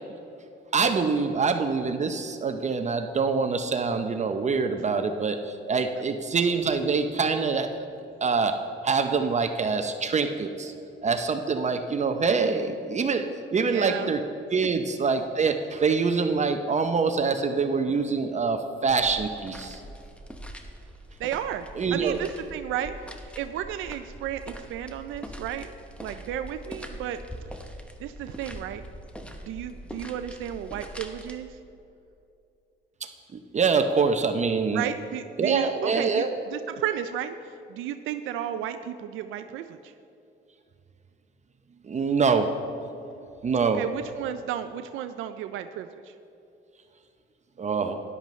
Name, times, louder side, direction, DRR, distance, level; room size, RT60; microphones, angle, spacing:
voice 1, 0.7-5.4 5.7-7.9 8.2-10.7 11.0-14.2 14.5-19.8 21.8-22.2 33.3-34.8 35.4-36.3 41.9-42.6 43.4-43.8 47.6-48.0, right 5 dB, 35° right, 7 dB, 0.6 m, -25 dB
voice 2, 13.6-14.1 21.2-27.2 28.0-28.8 29.2-31.6 34.7-39.9 43.6-46.1, right 10 dB, 90° right, 9 dB, 0.4 m, -33 dB
sound 1, 18.9-31.4, equal, 5° left, 0.9 m, -43 dB
13.0 x 10.5 x 3.1 m, 2.7 s
cardioid pair, 90°, 20 cm